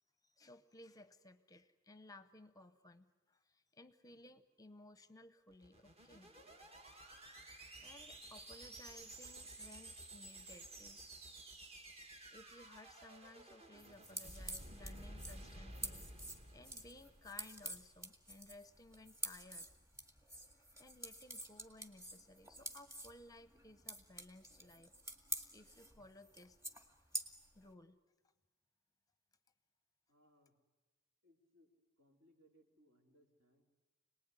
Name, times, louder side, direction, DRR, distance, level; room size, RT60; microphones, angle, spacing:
voice 1, 0.2-6.3 7.0-7.5 7.8-11.0 12.3-19.7 20.8-24.9 25.5-26.6 27.5-28.0, left 2 dB, 15° left, 12 dB, 0.8 m, -59 dB
sound 1, 5.5-17.9, right 1 dB, 30° right, 1.5 m, -54 dB
sound 2, 13.8-27.6, right 1 dB, 15° right, 1.9 m, -48 dB
voice 2, 30.1-30.6 31.2-31.7 32.0-33.6, equal, 70° right, 1 dB, 4.0 m, -70 dB
27.0 x 19.5 x 9.7 m, 1.2 s
head